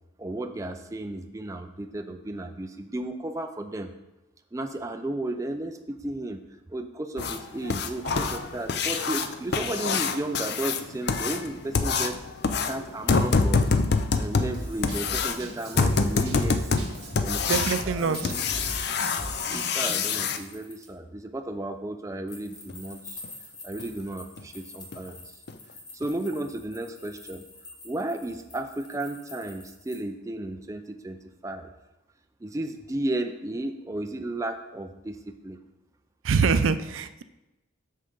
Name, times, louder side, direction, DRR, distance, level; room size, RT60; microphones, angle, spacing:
voice 1, 0.2-3.9 4.5-6.4 6.7-13.7 14.2-16.8 17.2-18.4 19.4-23.2 23.6-25.4 25.9-27.4 27.8-31.7 32.4-35.6, right 1 dB, 15° right, 6 dB, 0.3 m, -34 dB
sound 1, 7.2-20.4 22.7-22.8 23.2-23.3 23.8-23.9 24.4-24.5 24.9-25.1 25.5-25.6 26.0-26.1, left 4 dB, 50° left, 0.5 m, -26 dB
Drum kit / Drum, 14.5-20.1, right 1 dB, 50° right, 1.4 m, -39 dB
voice 2, 17.5-18.3 36.2-37.2, right 5 dB, 75° right, 12 dB, 0.4 m, -24 dB
sound 2, 18.1-20.8 22.3-30.0, left 2 dB, 20° left, 1.2 m, -45 dB
7.9 x 6.4 x 3.9 m, 0.99 s
head